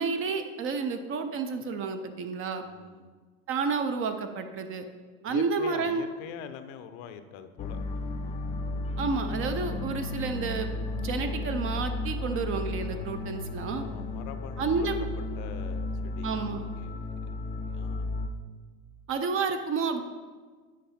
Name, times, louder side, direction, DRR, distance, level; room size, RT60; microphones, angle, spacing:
voice 1, 0.0-2.6 3.5-4.9 5.2-6.1 9.0-10.7 11.0-13.8 14.6-15.1 16.2-16.6 19.1-20.0, right 5 dB, 30° right, 7 dB, 0.6 m, -30 dB
voice 2, 2.6-3.1 5.3-8.5 13.8-14.9 15.4-18.2, left 8 dB, 55° left, 10 dB, 0.7 m, -45 dB
sound 1, 7.6-18.3, left 2 dB, 15° left, 0.4 m, -34 dB
8.4 x 4.9 x 4.2 m, 1.5 s
hypercardioid pair, 100°, 42 cm